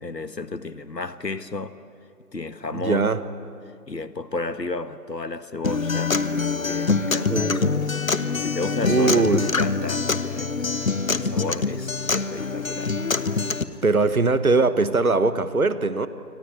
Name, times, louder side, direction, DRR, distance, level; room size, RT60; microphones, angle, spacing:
voice 1, 0.0-1.8 2.3-3.1 3.9-6.2 6.6-7.9 8.4-10.5 11.1-13.0, left 3 dB, 85° left, 12 dB, 1.5 m, -32 dB
voice 2, 2.7-3.2 7.3-7.9 8.9-9.5 13.8-16.1, right 3 dB, 60° right, 13 dB, 1.4 m, -21 dB
Acoustic guitar, 5.6-13.6, left 4 dB, 55° left, 1.1 m, -24 dB
sound 1, 6.3-14.3, left 2 dB, 40° left, 4.1 m, -50 dB
27.0 x 24.5 x 8.6 m, 2.4 s
figure-of-eight pair, 160°, 48 cm